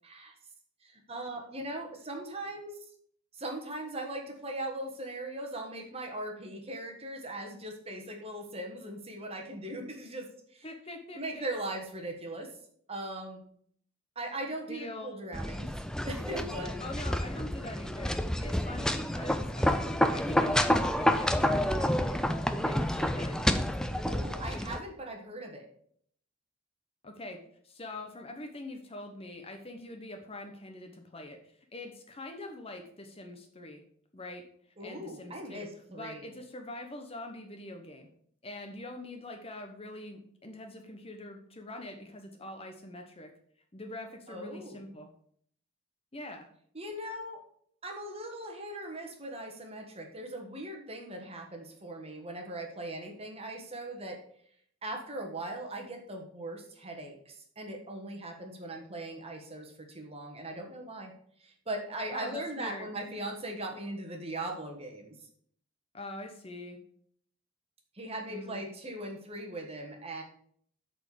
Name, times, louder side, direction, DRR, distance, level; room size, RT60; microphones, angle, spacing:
voice 1, 0.0-0.3 0.8-2.8 3.3-10.7 11.1-12.5 12.9-13.4 14.1-15.7 16.0-16.8 24.1-25.7 34.8-36.3 44.3-44.9 46.7-47.4 47.8-54.2 54.8-61.1 61.4-65.1 67.9-70.2, right 1 dB, 25° right, 2 dB, 1.4 m, -39 dB
voice 2, 10.6-11.4 14.7-15.2 16.8-22.2 22.6-23.4 27.0-27.4 27.6-31.4 31.7-33.8 34.1-34.4 34.8-38.1 38.4-43.3 43.7-45.1 46.1-46.5 62.1-62.9 65.9-66.8 68.3-68.6, left 2 dB, 25° left, 4 dB, 0.9 m, -44 dB
sound 1, 15.3-24.8, left 1 dB, 5° left, 0.4 m, -29 dB
7.8 x 4.3 x 6.7 m, 0.63 s
head